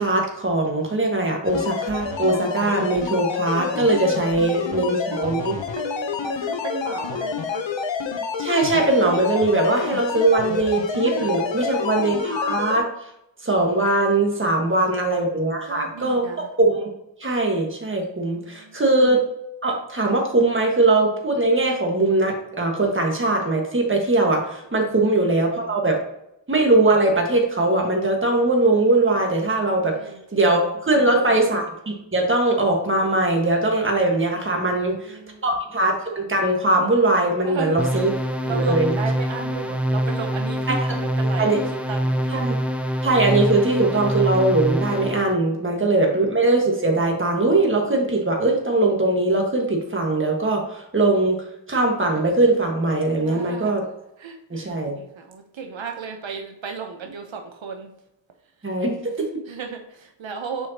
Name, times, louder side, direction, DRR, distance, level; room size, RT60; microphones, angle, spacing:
voice 1, 0.0-5.5 8.4-12.9 13.4-16.9 17.2-19.2 19.6-26.0 26.5-30.0 30.3-38.1 38.5-38.9 40.7-40.8 41.4-41.6 42.3-42.5 43.0-51.4 51.7-53.8 54.5-55.0 58.6-59.4, right 2 dB, 25° right, 1 dB, 1.5 m, -21 dB
sound 1, 1.4-12.8, left 5 dB, 75° left, 0.8 m, -28 dB
voice 2, 5.2-7.7 11.5-12.0 14.6-15.2 15.7-16.5 18.3-18.8 29.9-30.2 30.9-31.4 34.6-35.5 37.4-41.6 41.9-42.4 45.6-45.8 53.2-53.8 54.2-57.9 58.6-58.8 59.5-60.7, right 5 dB, 80° right, 4 dB, 0.9 m, -35 dB
sound 2, 37.8-45.3, equal, 5° right, 0.5 m, -25 dB
6.9 x 4.9 x 2.8 m, 0.82 s
wide cardioid pair, 115°, 45 cm